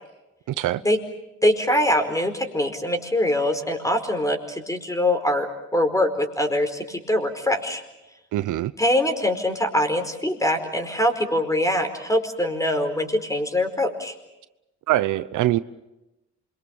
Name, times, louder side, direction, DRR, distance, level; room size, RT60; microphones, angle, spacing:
voice 1, 0.5-0.8 8.3-8.7 14.9-15.6, right 15 dB, 80° right, 0.9 m, -23 dB
voice 2, 1.4-5.5 5.7-7.8 8.8-14.1, left 1 dB, 10° left, 4.8 m, -23 dB
28.0 x 24.0 x 7.2 m
cardioid pair, 90°, 30 cm